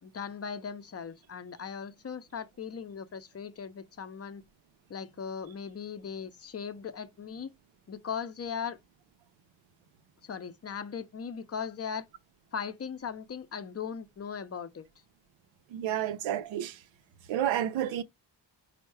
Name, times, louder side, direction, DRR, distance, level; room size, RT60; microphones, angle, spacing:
voice 1, 0.0-4.4 4.9-7.5 7.9-8.8 10.2-12.1 12.5-14.9, left 6 dB, 35° left, 0.6 m, -38 dB
voice 2, 15.7-16.8 17.3-18.0, right 11 dB, 85° right, 0.6 m, -30 dB
4.5 x 2.1 x 4.5 m
cardioid pair, 65°, 45 cm